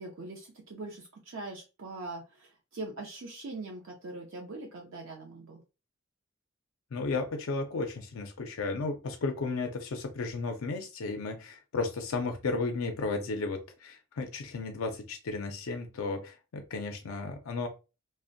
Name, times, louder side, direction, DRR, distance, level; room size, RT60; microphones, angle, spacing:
voice 1, 0.0-5.6, right 2 dB, 65° right, 0 dB, 0.5 m, -42 dB
voice 2, 6.9-17.7, left 3 dB, 70° left, 4 dB, 0.4 m, -34 dB
2.5 x 2.0 x 2.5 m, 0.29 s
head